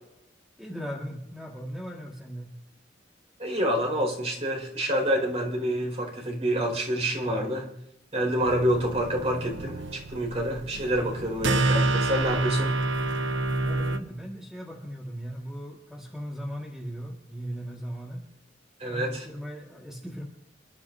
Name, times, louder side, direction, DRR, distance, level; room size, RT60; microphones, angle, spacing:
voice 1, 0.6-2.5 13.6-18.2 18.9-20.2, equal, ahead, -3 dB, 1.8 m, -38 dB
voice 2, 3.4-7.7 8.1-12.8 18.8-19.3, equal, 35° right, 0 dB, 5.3 m, -27 dB
sound 1, 8.4-14.0, right 2 dB, 75° right, 0.9 m, -28 dB
28.5 x 13.0 x 2.8 m, 0.82 s
head